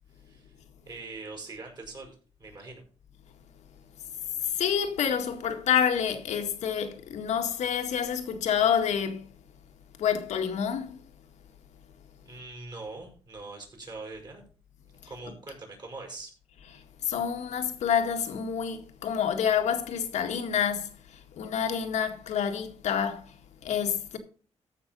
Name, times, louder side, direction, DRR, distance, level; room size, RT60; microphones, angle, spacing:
voice 1, 0.1-0.6 0.8-2.8 12.2-14.4 15.1-16.3, right 3 dB, 40° right, 6.1 m, -42 dB
voice 2, 4.5-9.2 10.0-11.0 17.0-20.9 21.4-23.3 23.6-24.2, left 8 dB, 90° left, 1.9 m, -28 dB
14.5 x 6.1 x 5.4 m
cardioid pair, 105°, 12 cm